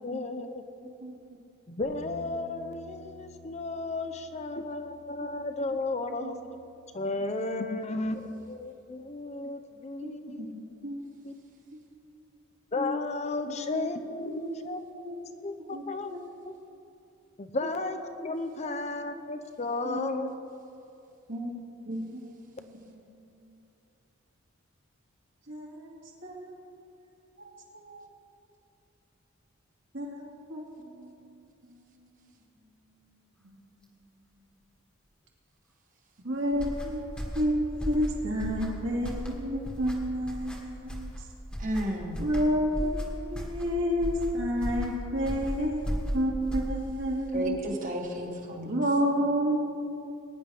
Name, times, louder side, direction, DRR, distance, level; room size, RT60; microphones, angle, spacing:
voice 1, 0.0-0.9 1.7-6.4 6.9-10.5 11.2-11.3 12.7-14.8 15.4-16.1 16.5-16.6 17.4-20.3, left 2 dB, 30° left, 8 dB, 0.6 m, -34 dB
voice 2, 1.0-1.4 6.2-6.4 7.3-7.6 10.0-11.0 11.7-11.8 13.5-13.9 14.2-14.5 15.0-15.2 15.7-15.8 16.1-16.2 17.6-17.7 18.6-18.8 19.8-20.3 21.3-21.6 21.8-22.6 23.2-23.3 25.5-26.6 27.4-28.1 29.9-31.9 33.4-33.8 36.2-41.1 42.2-47.6 48.6-49.6, equal, 65° right, -3 dB, 2.3 m, -31 dB
Bass guitar, 1.8-8.1, right 1 dB, 75° left, 2.8 m, -52 dB
sound 1, 36.5-47.1, equal, 5° left, 1.4 m, -36 dB
voice 3, 41.6-42.2 47.3-48.7, right 1 dB, 40° right, 0 dB, 1.5 m, -32 dB
20.5 x 9.9 x 3.5 m, 2.7 s
head